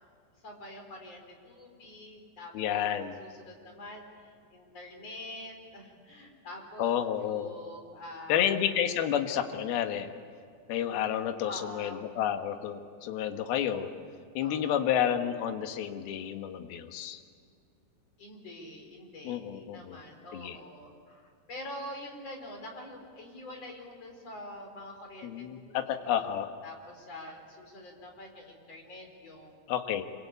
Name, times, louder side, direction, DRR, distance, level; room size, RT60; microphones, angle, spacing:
voice 1, 0.4-6.9 7.2-8.4 11.4-12.1 14.4-14.9 18.2-25.8 26.0-26.2 26.6-29.5, left 1 dB, 35° left, 2 dB, 5.2 m, -46 dB
voice 2, 2.5-3.2 6.8-7.5 8.3-10.1 10.7-13.9 14.3-17.2 19.2-20.0 20.3-20.6 25.2-26.5 29.7-30.0, left 9 dB, 65° left, 6 dB, 3.0 m, -30 dB
26.5 x 25.5 x 8.5 m, 2.3 s
omnidirectional pair, 5.3 m